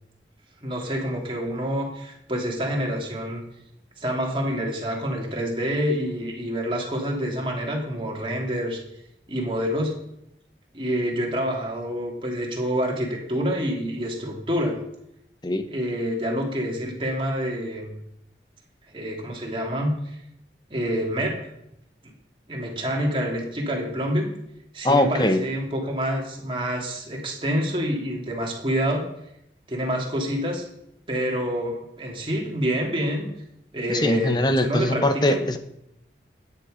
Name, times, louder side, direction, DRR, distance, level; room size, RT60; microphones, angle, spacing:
voice 1, 0.6-3.4 4.0-8.8 9.3-10.0 10.7-14.8 15.7-18.0 18.9-20.2 20.7-21.5 22.5-24.3 24.7-29.1 29.7-30.6 31.1-33.3 33.7-35.4, equal, 30° right, -1 dB, 2.9 m, -27 dB
voice 2, 24.8-25.4 33.9-35.6, left 1 dB, 25° left, 8 dB, 1.0 m, -21 dB
13.0 x 10.0 x 5.2 m, 0.78 s
head